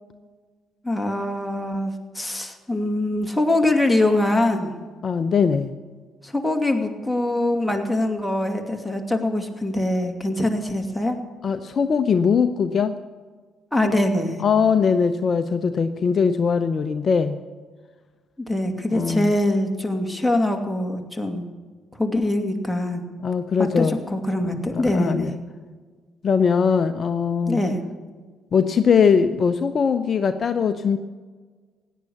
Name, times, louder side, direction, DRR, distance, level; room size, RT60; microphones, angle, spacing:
voice 1, 0.8-4.7 6.2-11.2 13.7-14.4 18.5-21.5 22.0-23.0 23.6-25.3 27.5-27.8, left 1 dB, 5° left, 3 dB, 2.4 m, -23 dB
voice 2, 5.0-5.7 11.4-13.0 14.4-17.4 18.9-19.3 23.2-24.0 24.4-25.3 26.2-27.6 28.5-31.0, left 6 dB, 50° left, 10 dB, 0.7 m, -21 dB
16.5 x 10.0 x 7.0 m, 1.5 s
hypercardioid pair, 50°, 0 cm